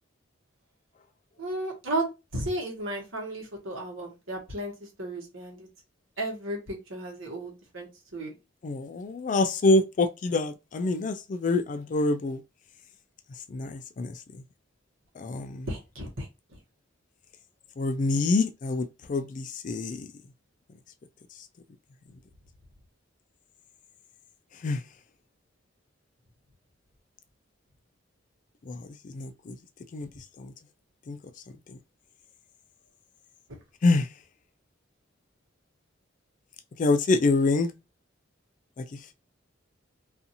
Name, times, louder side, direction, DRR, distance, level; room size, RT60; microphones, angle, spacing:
voice 1, 1.4-5.7 6.2-8.3 15.7-16.3, right 1 dB, 85° right, 1.1 m, -34 dB
voice 2, 8.6-12.4 13.5-14.4 15.2-15.7 17.8-20.1 24.6-24.8 28.7-29.6 29.9-30.5 31.1-31.2 31.7-31.8 33.8-34.1 36.8-37.7 38.8-39.1, left 3 dB, 40° left, 0.3 m, -26 dB
2.5 x 2.4 x 2.7 m
head